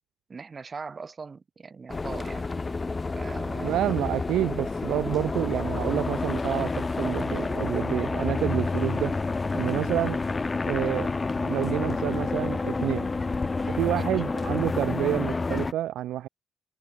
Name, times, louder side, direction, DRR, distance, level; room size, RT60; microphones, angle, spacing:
voice 1, 0.3-2.5 3.1-3.8 13.9-14.0, right 4 dB, 35° right, 3.2 m, -40 dB
sound 1, 1.9-15.7, left 3 dB, 25° left, 0.7 m, -29 dB
voice 2, 3.6-9.1 9.5-10.2 10.7-11.1 11.4-13.0 13.7-16.3, right 13 dB, 80° right, 0.4 m, -28 dB
cardioid pair, 90°, 0 cm